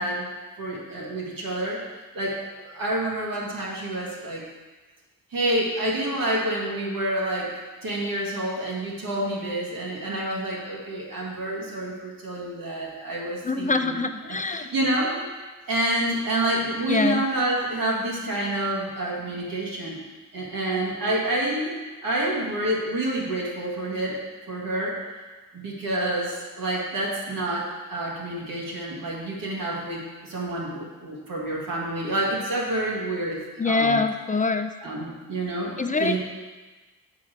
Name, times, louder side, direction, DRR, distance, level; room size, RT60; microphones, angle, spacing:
voice 1, 0.0-1.8 2.1-4.4 5.3-7.5 7.8-14.0 14.2-15.3 15.7-20.0 20.3-21.7 22.0-24.2 24.5-24.9 25.5-33.4 33.6-34.0 34.8-36.2, right 1 dB, 90° right, -5 dB, 1.8 m, -28 dB
voice 2, 13.4-14.7 16.8-17.3 33.6-34.7 35.8-36.2, left 3 dB, 25° left, 7 dB, 0.5 m, -24 dB
7.2 x 4.5 x 4.9 m, 1.3 s
cardioid pair, 55°, 33 cm